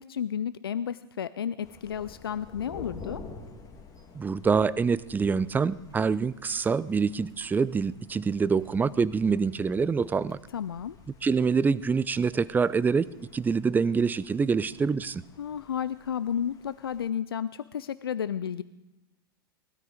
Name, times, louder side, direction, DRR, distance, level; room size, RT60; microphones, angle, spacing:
voice 1, 0.0-3.2 10.5-11.0 15.4-18.6, left 8 dB, 80° left, 16 dB, 0.4 m, -32 dB
Thunder, 1.6-17.1, left 4 dB, 30° left, 2.5 m, -50 dB
voice 2, 4.1-10.4 11.2-13.1 13.3-15.2, right 5 dB, 15° right, 19 dB, 0.5 m, -25 dB
19.5 x 13.0 x 4.9 m, 1.0 s
figure-of-eight pair, 90°, 12 cm